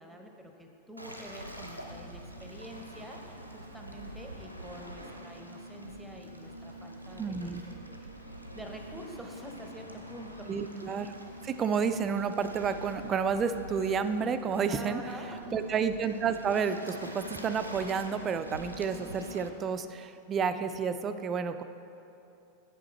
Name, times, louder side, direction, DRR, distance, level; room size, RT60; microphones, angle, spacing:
voice 1, 0.0-7.5 7.9-8.1 8.5-10.5 14.7-15.6, equal, 5° right, 3 dB, 0.8 m, -46 dB
Waves surf, 1.0-19.5, right 1 dB, 90° right, 0.6 m, -44 dB
voice 2, 7.2-7.6 10.5-11.1 11.4-15.0 15.5-21.6, right 6 dB, 25° right, 10 dB, 0.3 m, -30 dB
7.7 x 6.1 x 4.3 m, 2.8 s
figure-of-eight pair, 90°, 0 cm